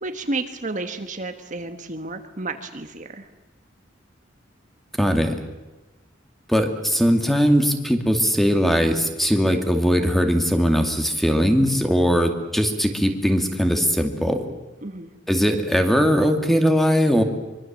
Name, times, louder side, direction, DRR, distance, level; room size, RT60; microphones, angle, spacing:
voice 1, 0.0-3.2 14.8-15.1, right 2 dB, 40° right, 7 dB, 1.5 m, -31 dB
voice 2, 5.0-5.3 6.5-14.4 15.3-17.2, equal, ahead, 5 dB, 2.3 m, -20 dB
24.5 x 24.0 x 7.5 m, 1.1 s
head